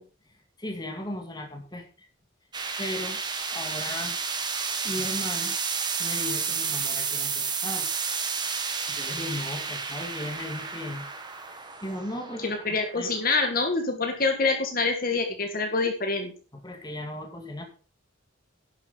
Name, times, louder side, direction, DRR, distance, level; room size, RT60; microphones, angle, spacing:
voice 1, 0.6-1.9 2.8-3.2 3.5-4.2 4.8-5.6 6.0-7.9 8.9-11.0 11.8-12.6 12.9-13.1 16.5-17.6, left 1 dB, 20° left, 4 dB, 2.1 m, -36 dB
sound 1, 2.5-13.7, right 5 dB, 20° right, 1.4 m, -31 dB
voice 2, 12.4-16.3, left 3 dB, 45° left, 4 dB, 1.8 m, -26 dB
11.5 x 7.3 x 5.6 m, 0.37 s
head